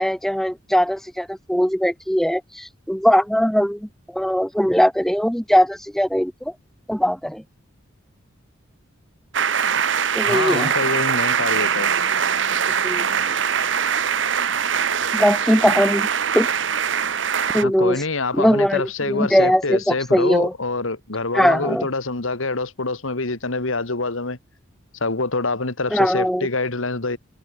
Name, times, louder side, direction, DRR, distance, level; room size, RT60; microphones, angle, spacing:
voice 1, 0.0-6.5 6.9-7.4 10.1-10.7 12.8-13.0 15.1-16.1 16.3-16.5 17.5-18.0 18.3-20.5 21.3-21.9 25.9-26.5, equal, ahead, 1.0 m, -20 dB
sound 1, 9.3-17.6, right 7 dB, 65° right, 1.0 m, -22 dB
voice 2, 10.2-11.9 17.6-24.4 25.0-27.2, left 3 dB, 80° left, 2.0 m, -25 dB
head